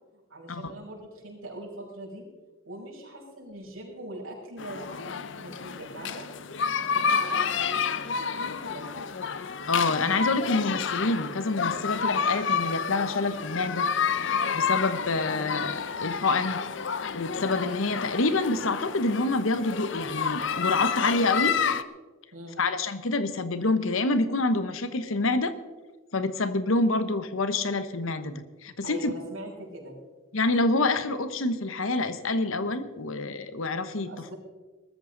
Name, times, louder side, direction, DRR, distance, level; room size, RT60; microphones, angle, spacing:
voice 1, 0.3-2.2 2.6-6.2 6.8-9.0 22.3-22.6 28.8-30.0 34.0-34.3, right 1 dB, 85° right, -3 dB, 6.0 m, -42 dB
sound 1, 4.6-21.8, left 6 dB, 60° left, 0.6 m, -30 dB
voice 2, 9.7-13.9 14.5-16.6 17.1-21.5 22.6-25.5 26.1-29.1 30.3-34.1, left 2 dB, 80° left, 12 dB, 1.1 m, -27 dB
20.5 x 14.0 x 4.0 m, 1.3 s
head